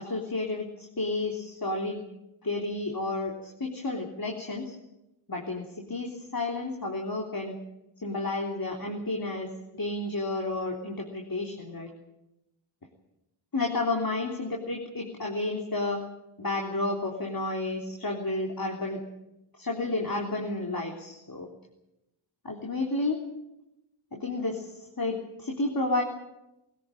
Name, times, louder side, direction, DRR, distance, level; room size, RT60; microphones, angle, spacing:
voice 1, 0.0-2.0 2.4-4.8 5.3-7.5 8.0-11.9 13.5-16.0 16.4-19.0 19.6-21.5 22.4-23.2 24.1-26.0, left 2 dB, 45° left, 1 dB, 3.5 m, -31 dB
22.0 x 17.5 x 8.9 m, 0.90 s
wide cardioid pair, 80°, 49 cm